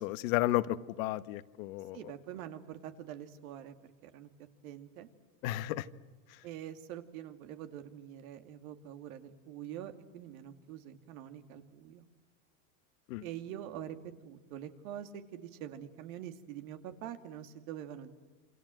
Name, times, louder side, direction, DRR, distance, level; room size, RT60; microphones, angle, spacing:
voice 1, 0.0-0.7 1.0-2.0 5.4-5.9 13.1-13.2, left 16 dB, 70° left, 1.2 m, -32 dB
voice 2, 1.9-4.3 4.6-5.1 6.4-12.1 13.2-18.1, right 10 dB, 75° right, 2.5 m, -45 dB
28.0 x 27.0 x 7.7 m
supercardioid pair, 140°, 43 cm